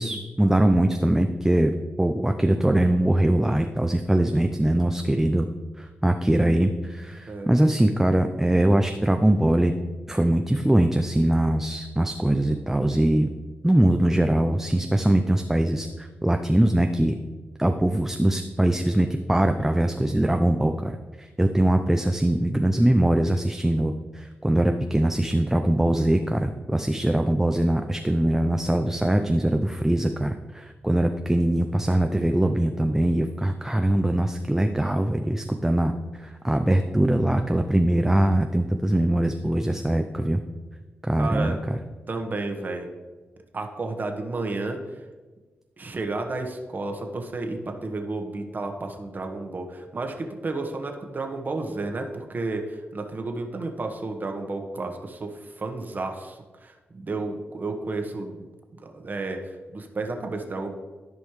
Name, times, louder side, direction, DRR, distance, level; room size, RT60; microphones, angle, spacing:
voice 1, 0.0-1.7 2.0-5.5 5.8-9.7 10.1-13.3 13.6-17.1 17.6-20.9 21.2-35.9 36.2-40.4 41.0-41.8, right 1 dB, 10° right, 5 dB, 0.5 m, -22 dB
voice 2, 41.2-41.6 42.1-42.9 43.5-45.0 45.8-58.4 58.7-60.7, right 3 dB, 45° right, 4 dB, 1.3 m, -32 dB
13.5 x 5.3 x 3.2 m, 1.3 s
cardioid pair, 80°, 4 cm